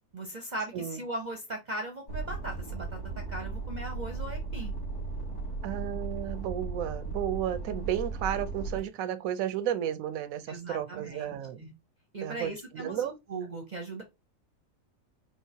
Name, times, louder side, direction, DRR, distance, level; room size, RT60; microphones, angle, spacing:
voice 1, 0.1-4.7 10.5-11.7 12.1-14.0, right 2 dB, 40° right, 0.7 m, -39 dB
sound 1, 2.1-8.8, right 3 dB, 80° left, 2.3 m, -36 dB
voice 2, 5.6-11.6 12.2-13.1, right 10 dB, 70° right, 1.0 m, -33 dB
4.5 x 3.0 x 2.7 m
omnidirectional pair, 1.6 m